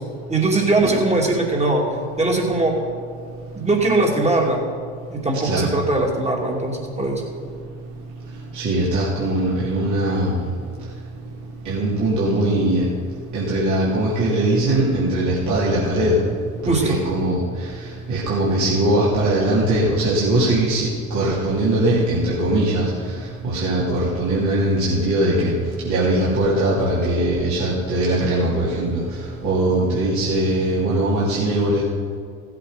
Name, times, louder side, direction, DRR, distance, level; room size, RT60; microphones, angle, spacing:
voice 1, 0.3-1.8 2.2-2.7 3.5-4.6 5.1-7.2 16.7-17.0, right 2 dB, 15° right, 0 dB, 2.7 m, -20 dB
voice 2, 8.5-10.4 11.6-12.8 13.3-16.2 16.6-17.4 18.1-22.8 23.4-25.5 25.8-29.0 29.4-31.8, right 1 dB, 45° right, -8 dB, 3.1 m, -20 dB
15.5 x 8.2 x 5.1 m, 2.1 s
hypercardioid pair, 70°, 42 cm